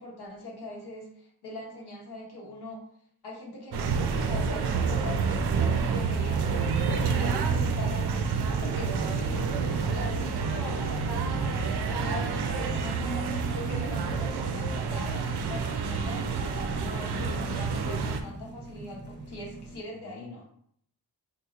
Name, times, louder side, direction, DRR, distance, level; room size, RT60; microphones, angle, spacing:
voice 1, 0.0-2.8 3.2-20.4, left 1 dB, 75° left, -2 dB, 1.2 m, -42 dB
sound 1, 3.7-18.2, right 5 dB, 75° right, 0.5 m, -28 dB
sound 2, 4.1-19.8, right 1 dB, 25° right, 0.6 m, -45 dB
voice 2, 16.8-17.6 20.0-20.5, left 3 dB, 30° left, 2 dB, 0.5 m, -44 dB
3.6 x 2.9 x 2.4 m, 0.65 s
cardioid pair, 75°, 40 cm